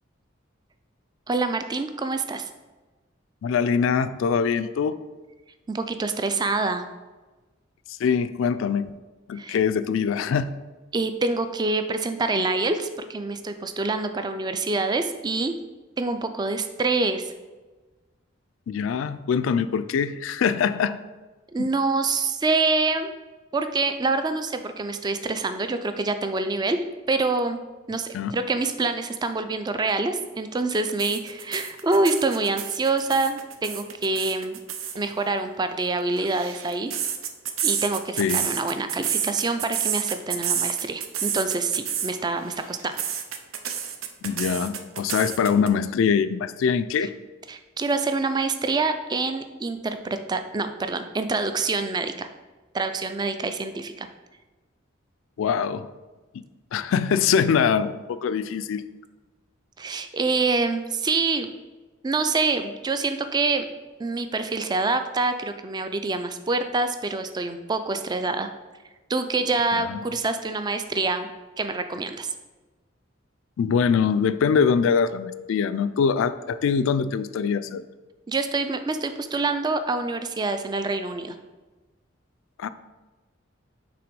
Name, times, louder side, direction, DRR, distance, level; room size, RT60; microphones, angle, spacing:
voice 1, 1.3-2.5 5.7-6.8 9.4-9.6 10.9-15.5 16.0-17.3 21.5-23.1 23.5-26.8 27.1-27.6 27.9-34.6 35.0-36.9 37.6-43.0 47.5-52.3 52.7-54.1 59.8-61.5 62.0-63.7 64.0-68.5 69.1-71.3 71.6-72.3 78.3-81.4, right 3 dB, 20° right, 9 dB, 0.3 m, -26 dB
voice 2, 3.4-5.0 7.9-8.9 9.3-10.6 18.7-21.0 28.1-28.4 38.2-38.5 44.2-47.1 55.4-55.9 56.7-58.8 69.7-70.0 73.6-77.8 82.6-82.7, left 6 dB, 70° left, 13 dB, 0.3 m, -23 dB
sound 1, 31.0-35.0 36.0-42.2 42.5-45.7, right 8 dB, 80° right, 0.6 m, -29 dB
5.8 x 3.5 x 5.2 m, 1.2 s
head